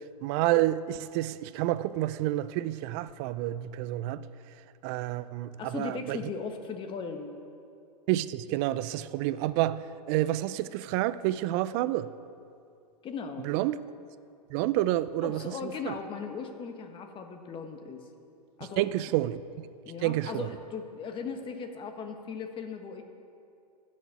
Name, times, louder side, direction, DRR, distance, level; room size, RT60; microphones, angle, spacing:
voice 1, 0.2-4.2 4.8-6.2 8.1-12.1 13.4-13.8 14.5-15.9 18.8-19.7 20.0-20.5, right 15 dB, 40° right, 0.5 m, -29 dB
voice 2, 5.6-7.3 13.0-13.5 15.2-18.0 18.6-18.9 19.8-23.0, left 5 dB, 25° left, 1.3 m, -38 dB
14.0 x 6.5 x 8.4 m
hypercardioid pair, 120°, 21 cm